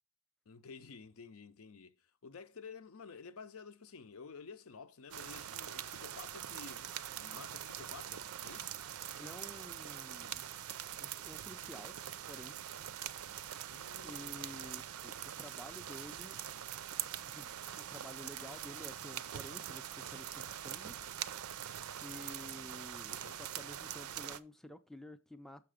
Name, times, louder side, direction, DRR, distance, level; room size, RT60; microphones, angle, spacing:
voice 1, 0.5-1.9 2.2-6.9 7.2-8.7 13.7-14.8 23.1-23.4, left 5 dB, 75° left, 0.6 m, -52 dB
sound 1, 5.1-24.4, right 10 dB, 85° right, 0.5 m, -43 dB
voice 2, 9.2-10.5 11.0-12.0 12.3-12.7 14.0-16.4 17.2-21.0 22.0-25.6, left 1 dB, ahead, 0.3 m, -51 dB
6.6 x 5.8 x 4.9 m
head